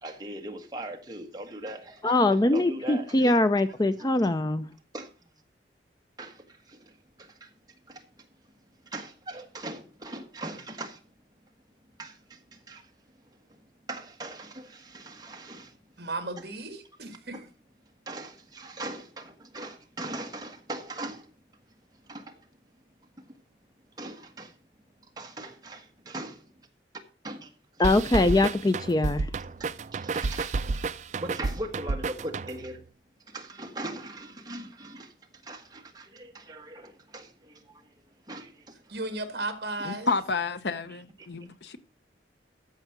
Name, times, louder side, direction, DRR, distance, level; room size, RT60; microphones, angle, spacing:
voice 1, 0.0-2.2 2.5-3.4 4.9-5.1 6.2-6.3 8.9-11.0 12.0-12.1 12.7-12.8 13.9-15.7 17.3-17.4 18.1-21.2 22.1-22.3 24.0-24.5 25.2-26.4 27.2-27.5 29.6-29.7 30.0-30.6 31.2-32.8 33.3-35.1 35.5-37.3 38.3-38.5 40.9-41.0, right 1 dB, 20° right, 1.4 m, -39 dB
voice 2, 2.0-4.6 27.8-29.3, left 2 dB, 20° left, 0.4 m, -23 dB
voice 3, 16.0-17.4 38.9-40.1, right 2 dB, 60° right, 1.8 m, -35 dB
sound 1, 27.8-32.8, right 3 dB, 40° right, 0.4 m, -31 dB
voice 4, 39.8-41.8, left 4 dB, 70° left, 0.8 m, -30 dB
13.5 x 4.9 x 5.8 m
head